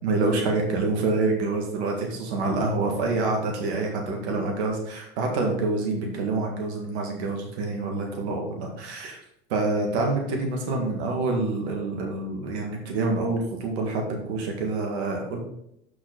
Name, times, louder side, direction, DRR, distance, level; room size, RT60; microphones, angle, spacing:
voice 1, 0.0-9.2 9.5-15.4, right 3 dB, 75° right, 1 dB, 1.9 m, -27 dB
6.2 x 6.1 x 3.9 m, 0.77 s
hypercardioid pair, 80°, 33 cm